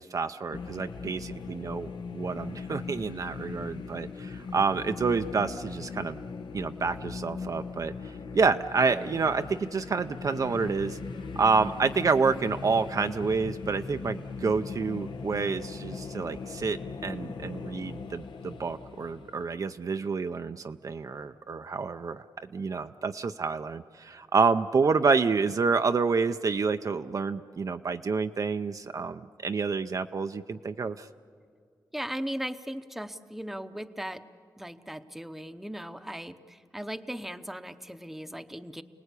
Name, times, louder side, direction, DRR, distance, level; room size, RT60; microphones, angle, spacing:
voice 1, 0.0-6.2 6.5-11.0 11.4-22.3 22.5-31.1, right 4 dB, 45° right, 8 dB, 0.5 m, -28 dB
sound 1, 0.5-19.4, left 4 dB, 85° left, 1.1 m, -39 dB
voice 2, 31.9-34.2 34.6-38.8, equal, 5° right, 9 dB, 0.8 m, -38 dB
29.0 x 19.0 x 8.3 m, 2.2 s
wide cardioid pair, 115°, 8 cm